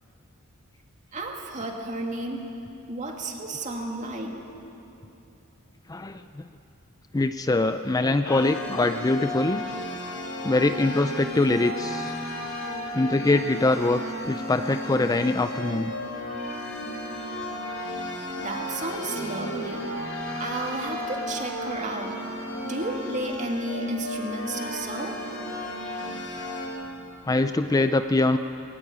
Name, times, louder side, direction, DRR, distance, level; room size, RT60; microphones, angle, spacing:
voice 1, 1.1-2.4 2.9-4.3 18.4-19.9 20.4-22.2 22.6-25.2, right 1 dB, 35° right, 1 dB, 2.5 m, -32 dB
voice 2, 5.9-6.5 7.1-9.6 10.4-12.1 12.9-14.0 14.3-15.9 27.2-28.4, left 2 dB, 15° left, 9 dB, 0.4 m, -23 dB
sound 1, 8.2-26.7, equal, 70° left, 4.1 m, -34 dB
20.5 x 19.0 x 8.7 m, 2.9 s
head